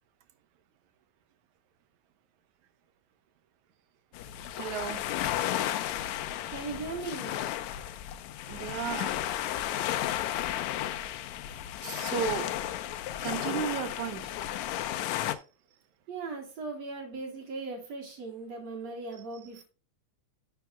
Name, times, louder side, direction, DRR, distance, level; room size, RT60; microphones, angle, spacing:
sound 1, 4.1-15.4, left 12 dB, 80° left, 1.9 m, -33 dB
voice 1, 4.6-5.0 8.5-9.2 11.8-12.5 13.2-14.3, right 9 dB, 80° right, 2.3 m, -34 dB
voice 2, 6.4-7.4 16.1-19.6, right 3 dB, 60° right, 4.4 m, -38 dB
12.0 x 7.2 x 2.2 m
omnidirectional pair, 3.3 m